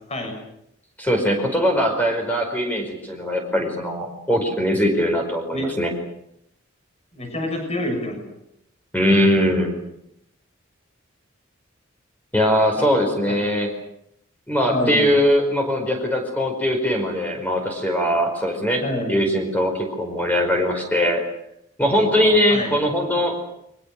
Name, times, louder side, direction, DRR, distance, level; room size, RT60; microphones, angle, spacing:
voice 1, 1.0-5.9 8.9-9.7 12.3-13.7 14.5-18.8 19.1-21.2 21.8-23.3, equal, 10° left, 2 dB, 5.0 m, -21 dB
voice 2, 7.1-8.3 12.5-13.4 14.7-15.1 18.8-19.2 21.8-22.8, left 1 dB, 30° left, 4 dB, 7.0 m, -28 dB
30.0 x 23.0 x 6.7 m, 0.78 s
head